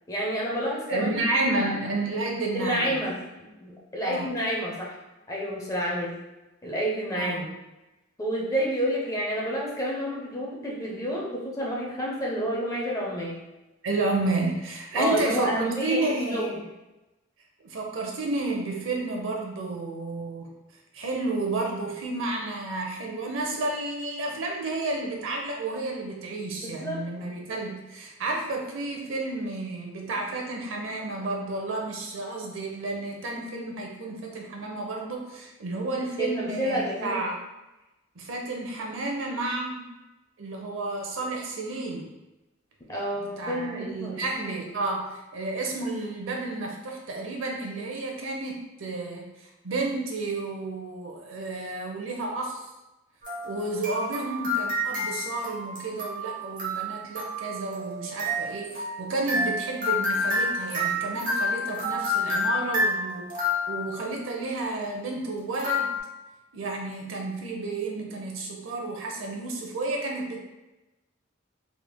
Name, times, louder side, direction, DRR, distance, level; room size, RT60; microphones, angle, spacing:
voice 1, 0.1-1.7 2.5-5.0 5.3-6.2 6.6-7.5 8.2-13.4 14.9-16.0 16.3-16.6 26.8-27.0 36.2-37.2 42.9-44.2, equal, 15° left, -4 dB, 0.6 m, -29 dB
voice 2, 0.9-3.0 4.0-4.3 7.1-7.5 13.8-16.5 17.6-20.5 20.9-37.3 38.2-39.8 40.4-42.1 43.2-52.7 53.4-63.3 63.7-65.9 66.5-70.4, right 2 dB, 70° right, 0 dB, 0.6 m, -31 dB
sound 1, 53.2-64.1 65.5-66.0, left 2 dB, 40° right, 1.0 m, -29 dB
3.5 x 3.2 x 2.2 m, 1.0 s
head